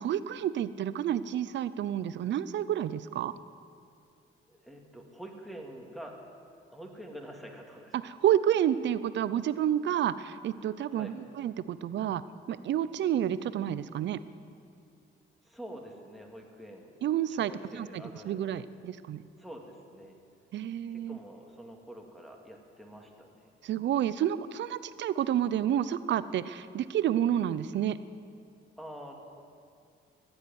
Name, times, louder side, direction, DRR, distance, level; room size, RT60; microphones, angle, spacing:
voice 1, 0.0-3.3 7.9-12.2 12.5-14.2 17.0-17.9 18.2-19.2 20.5-21.2 23.6-28.0, right 10 dB, 65° right, 15 dB, 0.6 m, -29 dB
voice 2, 4.5-6.2 6.7-8.0 10.9-11.1 15.4-16.9 17.3-18.5 19.4-20.2 20.9-23.5 28.8-29.1, equal, ahead, 0 dB, 2.3 m, -46 dB
14.5 x 8.0 x 9.6 m, 2.4 s
cardioid pair, 90°, 20 cm